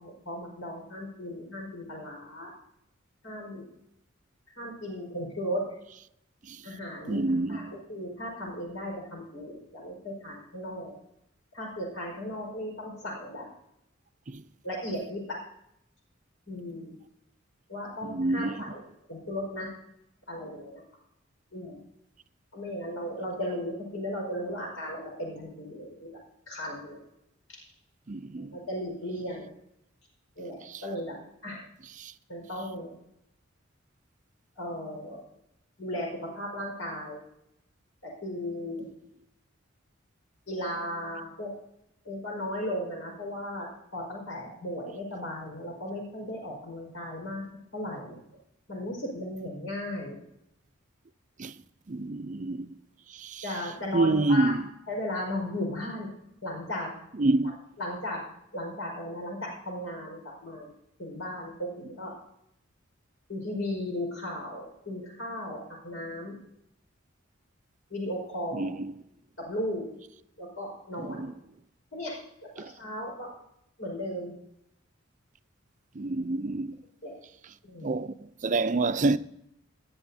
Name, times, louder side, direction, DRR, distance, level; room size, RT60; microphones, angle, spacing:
voice 1, 0.0-2.5 3.2-3.7 4.6-5.7 6.6-7.2 7.5-7.6 7.9-10.9 11.5-13.4 14.6-15.4 16.5-17.0 17.7-18.8 19.1-19.7 20.3-20.8 21.5-21.8 22.5-26.1 26.5-27.0 28.5-29.5 30.4-31.2 31.4-31.6 32.3-32.9 34.6-35.2 35.8-37.2 38.0-38.9 40.5-41.5 42.0-43.7 43.9-47.4 47.7-48.2 48.7-50.2 53.4-54.5 54.9-56.1 56.4-56.9 57.8-58.2 58.5-60.7 61.0-62.1 63.3-66.4 67.9-68.7 69.4-69.9 70.4-71.3 71.9-72.1 72.5-73.3 73.8-74.3 77.0-77.1 77.7-77.9, left 1 dB, 75° left, 4.9 m, -36 dB
voice 2, 7.1-7.8 14.3-14.4 18.0-18.6 28.1-28.6 30.6-30.8 32.0-32.1 51.4-51.6 51.9-52.7 53.1-53.5 53.9-54.7 57.1-57.5 68.5-69.0 71.0-71.3 72.6-72.7 76.0-76.8 77.8-79.2, right 2 dB, 40° right, 0.5 m, -28 dB
19.5 x 10.5 x 2.8 m
head